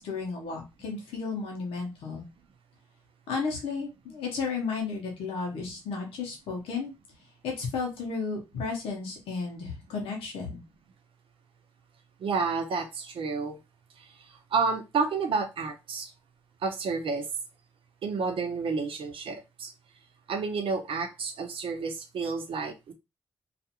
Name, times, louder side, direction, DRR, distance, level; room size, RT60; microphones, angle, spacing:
voice 1, 0.0-2.2 3.3-6.9 7.4-10.6, left 4 dB, 90° left, -1 dB, 0.8 m, -33 dB
voice 2, 12.2-13.6 14.0-16.1 16.6-17.3 18.0-19.7 20.3-22.9, right 4 dB, 70° right, 5 dB, 0.7 m, -30 dB
2.4 x 2.4 x 2.8 m, 0.25 s
supercardioid pair, 40°, 9 cm